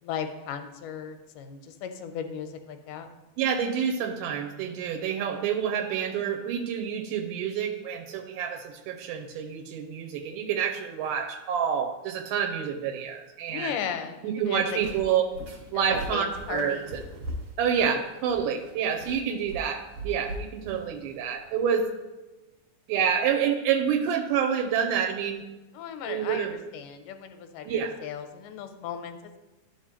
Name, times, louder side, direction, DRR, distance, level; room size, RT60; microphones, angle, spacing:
voice 1, 0.0-3.1 13.5-14.8 15.7-16.9 25.7-26.5 26.7-29.4, left 8 dB, 85° left, 7 dB, 2.1 m, -36 dB
voice 2, 3.4-13.7 14.2-15.2 15.7-17.0 17.6-21.8 22.9-25.4 26.1-26.5 27.6-27.9, right 8 dB, 85° right, 2 dB, 2.2 m, -28 dB
sound 1, 14.4-21.8, equal, 60° right, 2.0 m, -41 dB
11.5 x 4.9 x 2.9 m, 1.1 s
omnidirectional pair, 3.6 m